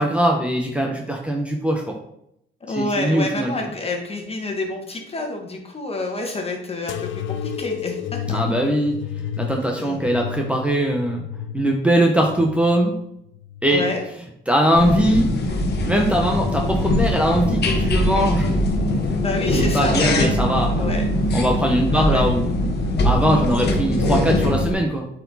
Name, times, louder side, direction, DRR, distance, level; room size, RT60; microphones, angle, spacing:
voice 1, 0.0-2.0 2.7-3.5 8.3-8.9 9.4-11.2 11.5-12.9 13.6-13.8 14.5-15.3 15.9-18.5 19.6-20.9 21.3-22.8 23.0-25.1, right 1 dB, 5° right, 1 dB, 1.0 m, -21 dB
voice 2, 2.6-8.4 9.8-10.0 13.7-14.1 16.1-16.3 19.2-21.1 21.9-22.3, left 2 dB, 30° left, 2 dB, 1.8 m, -28 dB
sound 1, 6.9-14.1 14.6-15.4 16.1-16.7 17.6-17.8, left 9 dB, 70° left, 0.5 m, -32 dB
sound 2, 14.7-24.7, left 1 dB, 55° left, 1.5 m, -21 dB
8.5 x 4.8 x 4.1 m, 0.77 s
cardioid pair, 90°, 20 cm